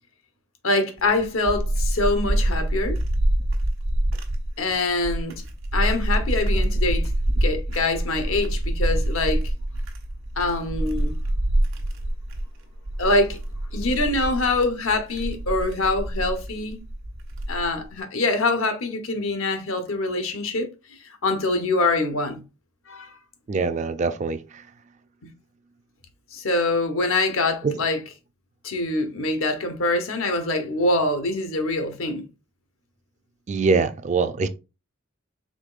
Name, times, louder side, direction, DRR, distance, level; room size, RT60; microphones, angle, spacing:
voice 1, 0.6-3.0 4.6-5.4 5.7-7.1 7.3-9.4 10.4-11.2 13.0-13.4 13.7-16.8 17.5-20.7 21.2-22.4 22.9-23.1 26.3-28.0 28.6-32.3, left 2 dB, 75° left, 0.9 m, -24 dB
sound 1, 1.0-17.8, right 1 dB, 75° right, 1.2 m, -26 dB
voice 2, 23.5-24.6 27.6-27.7 33.5-34.5, right 4 dB, 35° right, 0.3 m, -23 dB
5.0 x 3.7 x 2.4 m
head